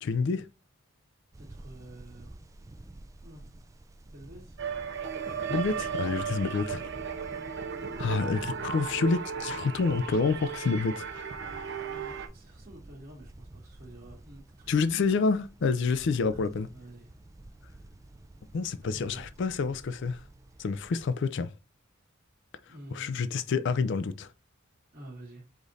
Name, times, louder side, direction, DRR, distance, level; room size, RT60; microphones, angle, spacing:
voice 1, 0.0-0.5 5.5-6.8 8.0-11.3 14.7-16.7 18.5-20.2 20.6-21.5 22.9-24.3, left 4 dB, 60° left, 0.4 m, -28 dB
sound 1, 1.3-21.1, right 1 dB, 15° right, 0.3 m, -51 dB
voice 2, 1.4-2.4 3.2-3.5 4.0-4.6 11.9-15.1 16.3-17.1 18.5-19.3 20.5-20.6 22.6-23.2 24.9-25.5, right 1 dB, 40° right, 1.4 m, -49 dB
sound 2, 4.6-12.3, right 6 dB, 55° right, 0.7 m, -35 dB
5.0 x 2.5 x 4.0 m
head